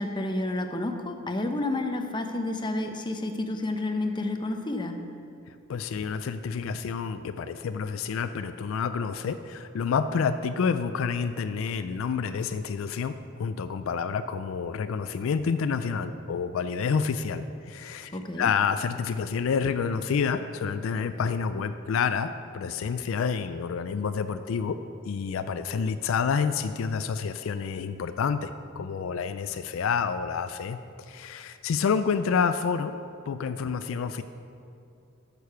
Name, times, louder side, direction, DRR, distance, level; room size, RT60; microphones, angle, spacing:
voice 1, 0.0-5.0 18.1-18.5, left 2 dB, 25° left, 5 dB, 0.7 m, -30 dB
voice 2, 5.7-24.8 25.1-28.5 28.8-30.8 31.1-32.9 33.3-34.2, left 6 dB, 80° left, 11 dB, 0.4 m, -28 dB
9.2 x 6.7 x 5.7 m, 2.5 s
head